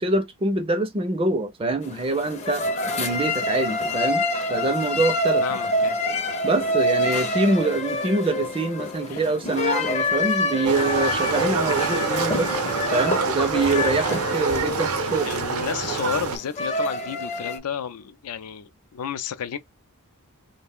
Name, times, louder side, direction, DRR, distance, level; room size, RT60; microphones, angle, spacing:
voice 1, 0.0-2.6 3.0-4.2 4.5-5.4 6.4-12.6 12.9-15.3, right 2 dB, 25° right, 0.4 m, -24 dB
sound 1, 1.8-17.6, left 2 dB, 30° left, 0.5 m, -27 dB
voice 2, 5.4-6.0 9.1-9.2 15.2-19.6, left 8 dB, 85° left, 0.4 m, -32 dB
Livestock farm animals working animals, 10.6-16.4, right 5 dB, 75° right, 0.6 m, -26 dB
2.4 x 2.1 x 3.5 m
head